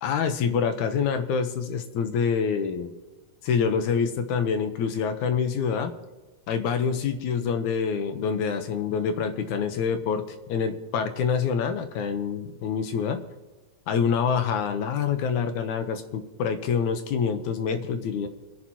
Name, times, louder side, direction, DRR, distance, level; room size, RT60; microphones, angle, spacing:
voice 1, 0.0-2.9 3.4-5.9 6.5-10.2 10.5-13.2 13.9-18.3, left 6 dB, 75° left, 8 dB, 2.3 m, -26 dB
27.0 x 10.5 x 3.0 m, 1.2 s
omnidirectional pair, 3.7 m